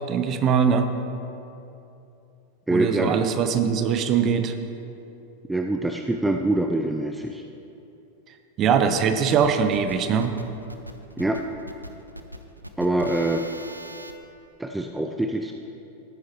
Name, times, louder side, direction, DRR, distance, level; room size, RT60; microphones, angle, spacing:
voice 1, 0.1-0.9 2.7-4.5 8.6-10.3, right 7 dB, 30° right, 8 dB, 0.8 m, -21 dB
voice 2, 2.7-3.2 5.5-7.4 11.2-11.4 12.8-13.5 14.6-15.5, right 2 dB, 5° right, 4 dB, 0.5 m, -24 dB
sound 1, 8.9-14.1, right 1 dB, 85° right, 0.6 m, -40 dB
15.5 x 9.6 x 3.1 m, 2.8 s
figure-of-eight pair, 90°, 0 cm